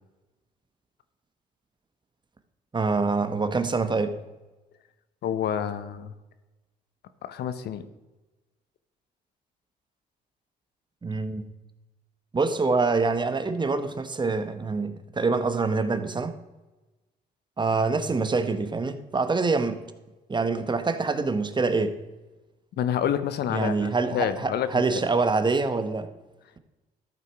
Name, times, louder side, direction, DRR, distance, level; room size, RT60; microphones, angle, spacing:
voice 1, 2.7-4.2 11.0-11.5 12.3-16.3 17.6-19.9 20.3-22.0 23.5-26.1, right 4 dB, 25° right, 1.0 m, -25 dB
voice 2, 5.2-6.1 7.2-7.9 22.8-25.0, left 9 dB, 65° left, 0.8 m, -28 dB
13.5 x 5.7 x 4.7 m
supercardioid pair, 70°, 18 cm